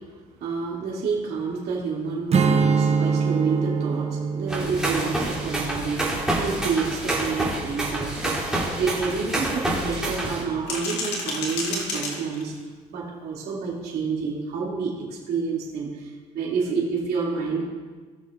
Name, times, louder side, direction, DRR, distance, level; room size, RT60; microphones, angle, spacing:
voice 1, 0.0-12.6 12.9-17.6, right 5 dB, 70° right, -5 dB, 2.7 m, -29 dB
Strum, 2.3-7.6, right 5 dB, 40° right, 0.7 m, -25 dB
sound 1, 4.5-10.4, right 1 dB, 5° right, 3.1 m, -27 dB
sound 2, 7.5-7.6 8.0-8.1 8.6-9.6 10.4-12.6, left 2 dB, 85° left, 2.0 m, -32 dB
18.0 x 6.7 x 2.5 m, 1.4 s
cardioid pair, 110°, 17 cm